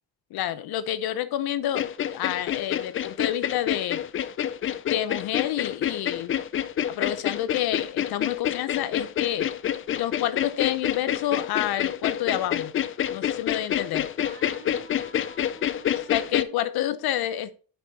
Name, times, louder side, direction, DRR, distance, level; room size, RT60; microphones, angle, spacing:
voice 1, 0.3-4.0 4.9-6.3 7.0-9.5 9.9-12.7 13.1-14.1 16.1-17.5, left 12 dB, 90° left, 0.8 m, -28 dB
sound 1, 1.7-16.4, left 10 dB, 35° left, 0.4 m, -28 dB
voice 2, 14.2-16.6, right 4 dB, 35° right, 1.9 m, -48 dB
11.0 x 5.9 x 2.9 m
cardioid pair, 155°, 36 cm